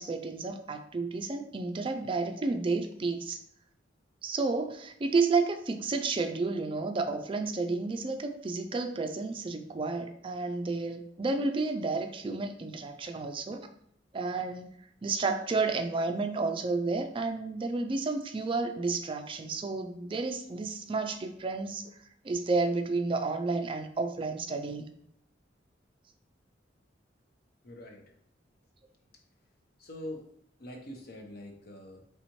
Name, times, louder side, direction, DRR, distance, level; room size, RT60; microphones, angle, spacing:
voice 1, 0.0-3.4 4.2-13.7 14.1-14.7 15.0-21.8 22.2-24.9, right 3 dB, 30° right, 6 dB, 0.3 m, -31 dB
voice 2, 27.6-28.0 29.8-30.2 30.6-32.0, left 1 dB, 55° left, 2 dB, 0.9 m, -43 dB
4.2 x 3.4 x 2.9 m, 0.69 s
head